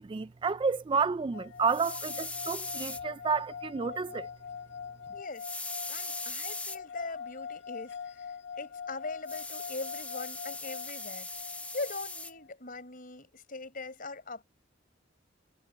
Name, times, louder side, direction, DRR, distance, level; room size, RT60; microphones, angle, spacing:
voice 1, 0.0-4.3, right 5 dB, 25° right, 0.3 m, -30 dB
sound 1, 1.3-12.5, left 6 dB, 65° left, 1.9 m, -43 dB
sound 2, 1.7-3.0 5.4-6.8 9.3-12.3, left 2 dB, 10° left, 1.3 m, -39 dB
voice 2, 5.1-5.5 5.9-14.4, left 3 dB, 50° left, 5.5 m, -41 dB
head